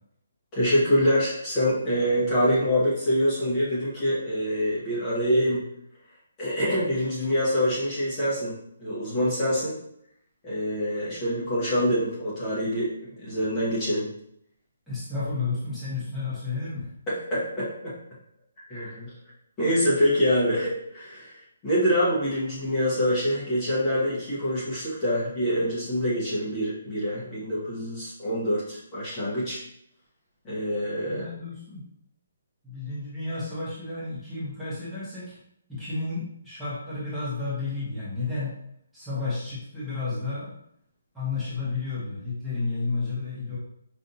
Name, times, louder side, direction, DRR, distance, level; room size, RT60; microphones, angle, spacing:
voice 1, 0.5-5.7 6.4-9.7 10.4-14.1 17.1-18.0 18.7-19.1 19.6-29.6 30.4-31.2, equal, 20° left, -9 dB, 1.0 m, -25 dB
voice 2, 14.9-16.9 31.0-31.9 32.6-35.4 35.7-38.6 38.9-40.5 41.1-43.6, left 3 dB, ahead, -13 dB, 1.0 m, -32 dB
5.2 x 2.5 x 2.7 m, 0.73 s
hypercardioid pair, 170°, 0 cm